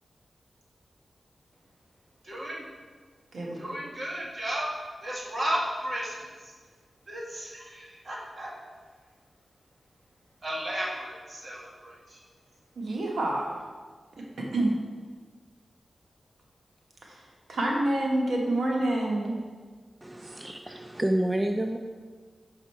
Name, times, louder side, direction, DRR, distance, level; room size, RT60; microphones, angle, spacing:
voice 1, 2.2-2.7 3.5-4.7 5.0-6.5 7.1-8.5 10.4-12.2, equal, 45° right, -4 dB, 1.7 m, -34 dB
voice 2, 12.8-13.5 14.4-14.8 17.1-17.2 17.5-19.4, right 1 dB, 75° right, -2 dB, 1.2 m, -27 dB
voice 3, 20.0-21.8, right 1 dB, 15° right, 5 dB, 0.3 m, -29 dB
6.3 x 4.9 x 4.6 m, 1.5 s
wide cardioid pair, 85°, 0 cm